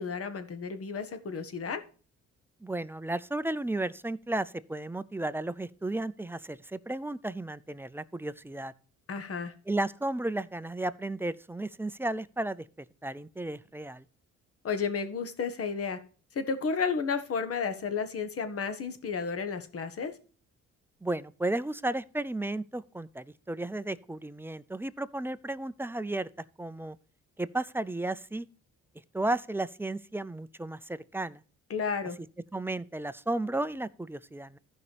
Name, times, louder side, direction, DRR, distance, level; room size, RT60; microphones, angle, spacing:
voice 1, 0.0-1.8 9.1-9.5 14.6-16.0 16.3-20.1 31.7-32.2, left 5 dB, 50° left, 1.4 m, -32 dB
voice 2, 2.6-8.7 9.7-12.6 13.0-14.0 21.0-26.3 26.6-27.0 27.4-28.5 29.1-31.4 32.5-34.6, right 2 dB, 10° right, 0.4 m, -33 dB
14.5 x 5.4 x 3.3 m
cardioid pair, 90°, 30 cm